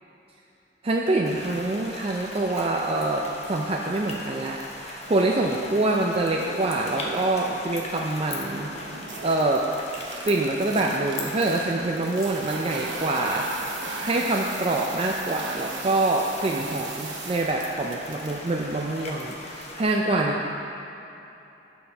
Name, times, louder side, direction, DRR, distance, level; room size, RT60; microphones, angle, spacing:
voice 1, 0.8-8.7 9.2-9.7 10.2-13.6 14.0-20.5, right 2 dB, 35° right, -1 dB, 0.5 m, -25 dB
sound 1, 1.2-19.8, left 2 dB, 35° left, 0.9 m, -40 dB
sound 2, 6.3-7.7 8.1-18.4, right 3 dB, 85° right, 0.9 m, -38 dB
10.0 x 4.8 x 5.4 m, 3.0 s
head